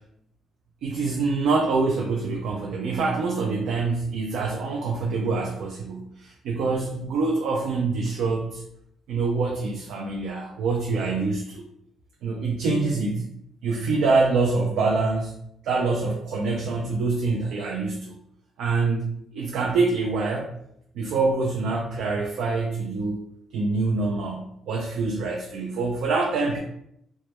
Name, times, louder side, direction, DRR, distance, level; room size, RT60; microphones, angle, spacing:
voice 1, 0.8-8.6 9.1-11.6 12.2-13.3 13.6-15.4 15.6-18.2 18.6-20.5 21.0-23.2 23.5-26.6, right 3 dB, 80° right, 0 dB, 0.3 m, -25 dB
2.2 x 2.0 x 2.8 m, 0.75 s
cardioid pair, 90°, 0 cm